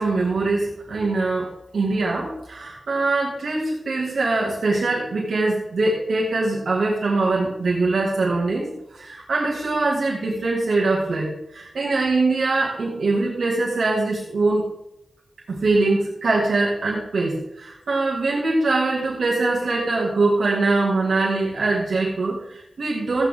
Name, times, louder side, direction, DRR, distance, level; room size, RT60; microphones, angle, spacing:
voice 1, 0.0-14.7 15.5-23.3, right 3 dB, 75° right, -4 dB, 2.0 m, -23 dB
14.5 x 8.7 x 3.7 m, 0.85 s
wide cardioid pair, 115°, 0 cm